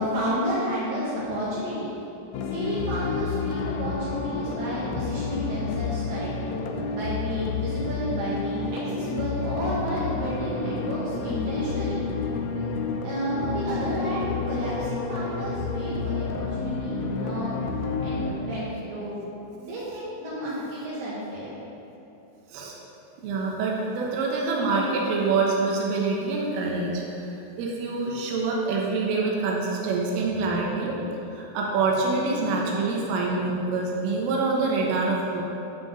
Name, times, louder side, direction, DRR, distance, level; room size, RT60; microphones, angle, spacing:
voice 1, 0.0-1.9 2.5-6.5 6.9-12.0 12.5-12.7 13.0-17.5 18.0-19.2 19.6-21.6, equal, 70° right, -9 dB, 3.7 m, -31 dB
sound 1, 2.3-18.3, left 4 dB, 80° left, 3.0 m, -30 dB
voice 2, 23.2-31.0 31.3-35.4, right 3 dB, 90° right, -2 dB, 3.6 m, -26 dB
12.0 x 4.7 x 6.7 m, 2.9 s
omnidirectional pair, 5.6 m